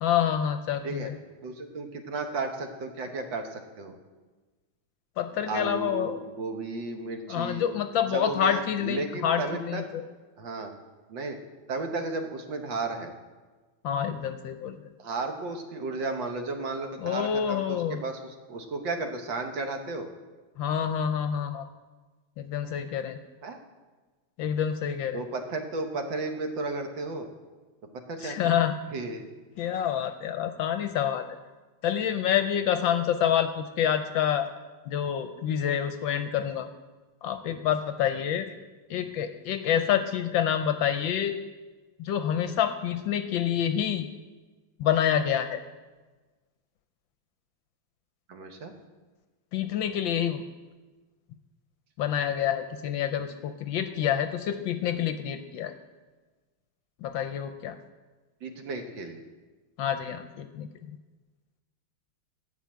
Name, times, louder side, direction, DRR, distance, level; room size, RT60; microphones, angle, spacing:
voice 1, 0.0-1.2 5.2-6.3 7.3-10.0 13.8-14.9 17.0-18.0 20.6-21.7 22.4-23.2 24.4-25.2 28.2-28.8 29.6-31.3 31.8-34.5 34.9-36.7 37.2-38.5 38.9-41.4 42.0-44.1 44.8-45.6 49.5-50.4 52.0-55.7 57.0-57.8 59.8-61.0, left 9 dB, 75° left, 9 dB, 1.2 m, -27 dB
voice 2, 1.4-4.0 5.5-7.7 8.1-9.8 10.4-10.7 11.1-11.4 11.7-13.1 15.0-20.1 23.4-23.6 25.1-27.3 28.1-28.5 28.9-29.3 48.3-48.7 54.8-54.9 58.4-59.2, right 3 dB, 65° right, 5 dB, 1.7 m, -34 dB
12.5 x 6.1 x 8.6 m, 1.3 s
omnidirectional pair, 2.4 m